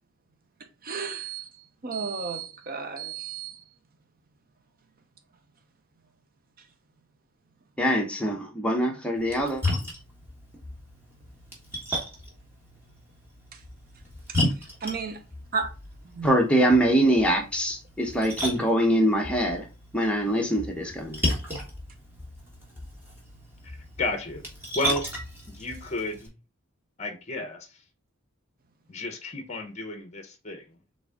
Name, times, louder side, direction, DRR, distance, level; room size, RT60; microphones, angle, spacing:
voice 1, 0.8-1.5 1.8-3.5 14.8-15.2 15.5-15.7 16.1-16.4, right 5 dB, 45° right, 0.8 m, -32 dB
voice 2, 7.8-9.6 16.2-19.6 19.9-21.2, right 1 dB, 5° left, 0.9 m, -23 dB
Splash splatter, 9.2-26.3, left 1 dB, 10° right, 1.4 m, -35 dB
voice 3, 23.6-24.4 24.7-25.0 25.5-26.3 27.0-27.8 28.9-30.8, left 2 dB, 35° left, 0.8 m, -32 dB
3.9 x 3.7 x 3.5 m
head